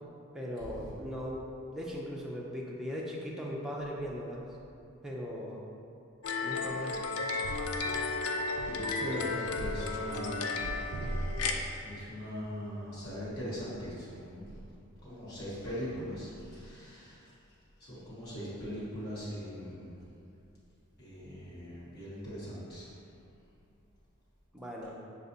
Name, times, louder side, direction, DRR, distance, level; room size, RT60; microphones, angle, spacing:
voice 1, 0.3-1.5 1.7-4.4 5.0-5.6 6.4-7.1 24.5-24.9, equal, ahead, -4 dB, 0.4 m, -38 dB
sound 1, 6.2-11.6, left 3 dB, 75° left, 0.4 m, -34 dB
sound 2, 6.9-8.2 8.5-12.5 12.9-15.1 15.3-16.7, right 1 dB, 75° right, 0.3 m, -42 dB
voice 2, 8.6-10.6 11.8-14.4 15.0-17.2 17.8-20.0 21.0-22.9, equal, 50° left, -11 dB, 1.4 m, -40 dB
6.4 x 2.4 x 2.6 m, 2.7 s
head